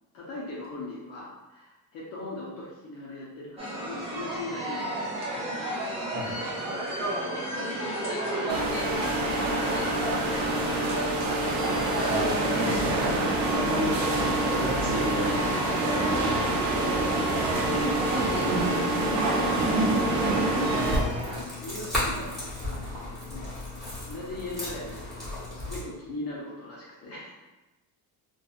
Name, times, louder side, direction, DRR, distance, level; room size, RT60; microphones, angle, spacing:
voice 1, 0.1-5.5 6.6-8.7 9.1-10.9 11.6-13.1 13.4-13.5 16.0-16.6 17.7-21.0 21.3-23.5 23.8-27.3, left 1 dB, 40° left, -5 dB, 0.5 m, -39 dB
sound 1, 3.6-21.4, right 1 dB, 15° right, 0.4 m, -33 dB
sound 2, 8.5-21.0, right 2 dB, 70° right, 0.6 m, -27 dB
voice 2, 12.0-14.0 14.5-16.4 17.1-17.6 18.2-18.5 20.7-21.2, equal, 45° right, -6 dB, 0.9 m, -33 dB
sound 3, 20.8-25.8, left 1 dB, ahead, 0.9 m, -35 dB
2.7 x 2.2 x 2.4 m, 1.0 s
cardioid pair, 170°, 38 cm